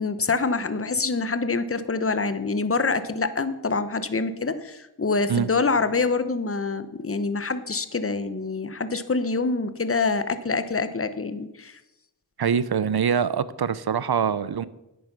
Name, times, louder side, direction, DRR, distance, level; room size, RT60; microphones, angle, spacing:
voice 1, 0.0-11.8, left 4 dB, 30° left, 12 dB, 1.0 m, -26 dB
voice 2, 12.4-14.7, right 7 dB, 55° right, 18 dB, 0.7 m, -24 dB
10.5 x 8.4 x 6.0 m, 0.93 s
cardioid pair, 40°, 46 cm